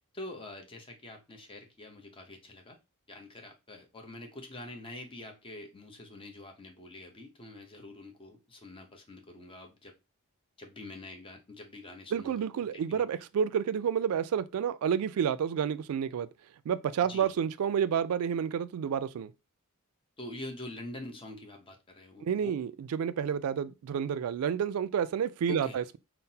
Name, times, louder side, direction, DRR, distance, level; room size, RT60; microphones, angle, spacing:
voice 1, 0.1-2.8 3.1-9.9 10.6-13.0 17.1-17.3 20.2-22.6 25.5-25.8, left 2 dB, 25° left, 0.7 m, -45 dB
voice 2, 12.1-16.3 16.7-19.3 22.2-26.0, right 8 dB, 75° right, 0.3 m, -30 dB
5.6 x 2.0 x 2.7 m
head